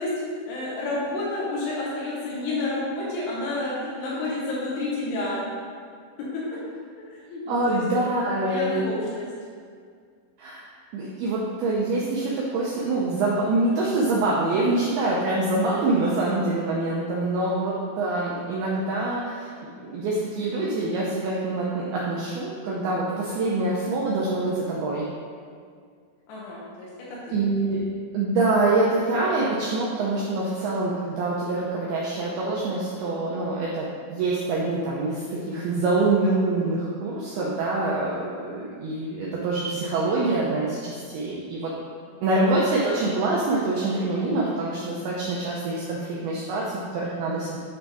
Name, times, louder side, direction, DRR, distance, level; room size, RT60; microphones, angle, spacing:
voice 1, 0.0-5.4 6.2-6.4 7.0-7.8 8.4-9.3 26.3-27.4 42.1-42.3, left 2 dB, 80° left, -6 dB, 3.3 m, -30 dB
voice 2, 7.5-8.8 10.4-10.6 10.9-19.5 19.8-25.1 27.3-27.8 28.1-41.7 42.2-47.6, right 2 dB, 90° right, -4 dB, 2.2 m, -25 dB
8.6 x 3.5 x 4.0 m, 2.1 s
omnidirectional pair, 5.3 m